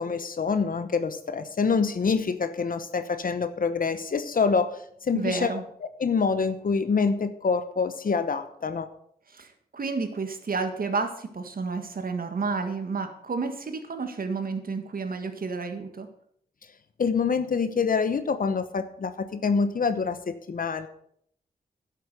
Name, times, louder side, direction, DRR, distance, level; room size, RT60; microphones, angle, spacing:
voice 1, 0.0-5.6 6.0-8.9 17.0-20.9, left 5 dB, 55° left, 11 dB, 1.0 m, -26 dB
voice 2, 5.1-5.6 9.3-9.5 9.7-16.1, right 4 dB, 60° right, 7 dB, 1.8 m, -30 dB
11.0 x 8.1 x 6.7 m, 0.67 s
cardioid pair, 75°, 17 cm